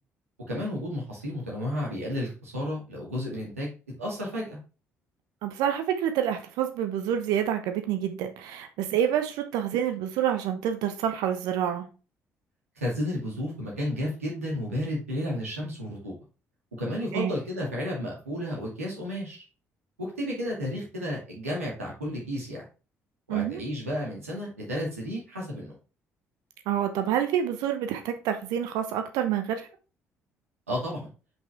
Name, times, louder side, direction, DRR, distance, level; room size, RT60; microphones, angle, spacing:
voice 1, 0.5-3.7 4.0-4.6 12.8-16.1 16.7-19.4 20.0-22.6 23.3-25.7 30.7-31.0, left 1 dB, 85° right, 2.4 m, -32 dB
voice 2, 5.4-11.9 17.1-17.4 23.3-23.6 26.7-29.7, right 10 dB, 65° right, 0.9 m, -28 dB
6.0 x 5.5 x 3.6 m
figure-of-eight pair, 50°, 7 cm